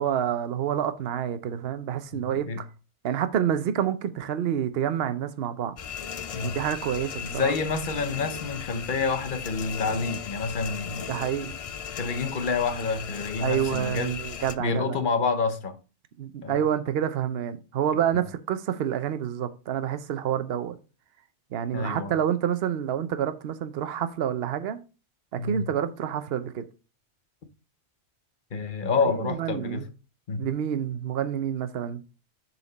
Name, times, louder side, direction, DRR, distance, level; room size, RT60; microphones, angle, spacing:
voice 1, 0.0-2.7 3.0-5.8 6.4-7.5 11.1-11.5 13.4-15.0 16.2-20.8 21.5-24.8 25.3-26.7 29.1-29.8 30.4-32.0, right 9 dB, 60° right, 0.9 m, -28 dB
voice 2, 2.1-2.6 6.3-6.6 7.2-11.1 11.9-14.2 14.6-15.8 16.4-16.6 18.1-18.3 21.7-22.1 25.4-25.7 28.5-29.9 30.3-30.5, left 4 dB, 50° left, 1.0 m, -28 dB
sound 1, 5.8-14.6, left 7 dB, 65° left, 0.3 m, -37 dB
6.8 x 4.4 x 5.1 m
omnidirectional pair, 1.2 m